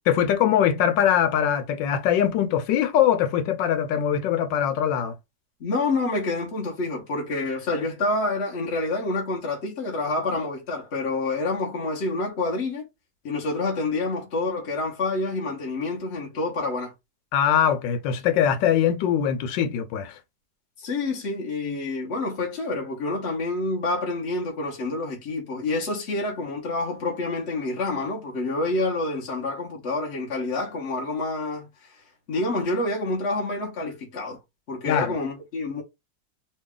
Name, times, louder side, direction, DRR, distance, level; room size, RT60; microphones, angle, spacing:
voice 1, 0.1-5.1 17.3-20.2 34.9-35.2, left 9 dB, 85° left, 1.4 m, -22 dB
voice 2, 5.6-12.9 13.2-16.9 20.8-32.0 32.3-34.4 34.7-35.8, left 2 dB, 45° left, 1.0 m, -28 dB
3.2 x 2.3 x 3.6 m
omnidirectional pair, 1.9 m